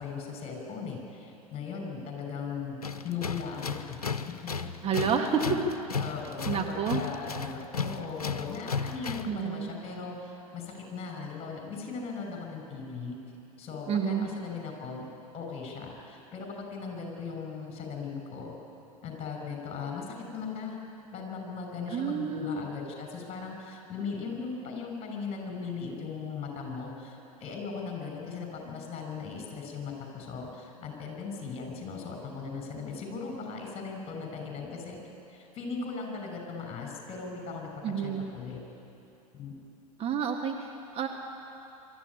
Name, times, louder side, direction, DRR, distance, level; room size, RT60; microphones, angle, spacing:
voice 1, 0.0-4.0 5.0-5.5 6.0-13.2 13.6-15.0 15.3-18.5 19.0-20.8 21.1-35.0 35.3-37.7 38.0-38.6 39.3-39.5, left 5 dB, 35° left, 2 dB, 6.1 m, -38 dB
Tools, 2.8-9.4, left 5 dB, 85° left, 0.8 m, -35 dB
voice 2, 4.8-5.6 6.5-7.0 9.2-9.7 13.9-14.3 21.9-22.6 37.8-38.2 40.0-41.1, right 6 dB, 30° right, 2 dB, 1.9 m, -29 dB
24.0 x 13.5 x 10.0 m, 2.9 s
figure-of-eight pair, 85°, 19 cm